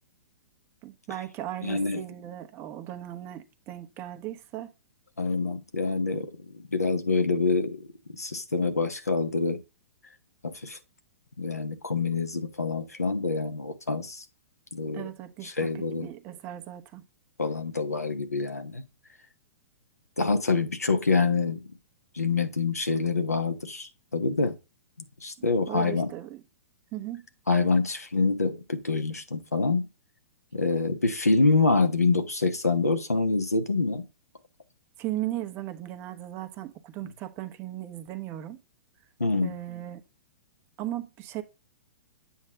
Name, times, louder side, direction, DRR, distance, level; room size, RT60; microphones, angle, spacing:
voice 1, 0.8-4.7 14.9-17.0 25.7-26.4 26.9-27.2 35.0-38.6 39.4-40.0 40.8-41.4, right 14 dB, 30° right, 1.0 m, -37 dB
voice 2, 1.6-2.0 5.2-7.9 8.2-9.6 10.4-10.8 11.4-14.2 14.7-15.1 15.4-16.1 17.4-18.8 20.2-21.6 22.1-24.5 25.2-26.1 27.5-29.9 30.5-34.1 39.2-39.5, left 3 dB, 85° left, 1.2 m, -26 dB
8.2 x 3.1 x 6.3 m
figure-of-eight pair, 110°, 8 cm